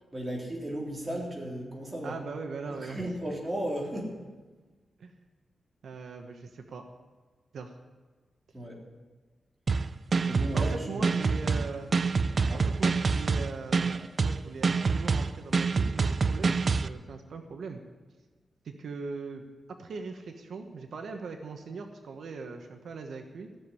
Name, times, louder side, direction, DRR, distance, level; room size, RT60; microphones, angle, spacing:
voice 1, 0.1-2.2 2.7-4.2 8.5-8.8 10.2-11.5 12.3-12.7, right 1 dB, 20° right, -2 dB, 3.5 m, -35 dB
voice 2, 2.0-3.0 5.0-5.1 5.8-6.8 7.5-7.7 10.5-11.9 12.5-17.8 18.6-19.4 19.8-23.5, right 4 dB, 80° right, 5 dB, 1.1 m, -40 dB
sound 1, 9.7-16.9, right 4 dB, 45° right, 0.5 m, -26 dB
15.0 x 7.3 x 9.7 m, 1.3 s
wide cardioid pair, 130°, 0 cm